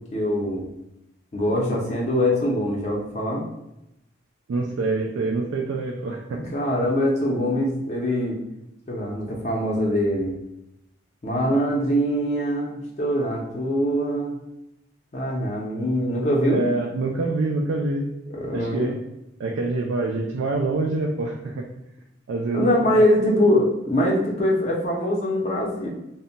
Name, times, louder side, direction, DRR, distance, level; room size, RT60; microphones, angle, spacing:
voice 1, 0.1-0.7 1.3-3.4 6.3-8.4 8.9-10.4 11.2-14.4 15.1-16.6 18.3-18.9 22.5-25.9, equal, 35° left, -2 dB, 0.4 m, -23 dB
voice 2, 4.5-6.4 16.5-18.1 18.5-18.9 19.4-21.7 22.3-23.0, right 3 dB, 85° right, 1 dB, 0.4 m, -26 dB
2.1 x 2.0 x 3.7 m, 0.89 s
head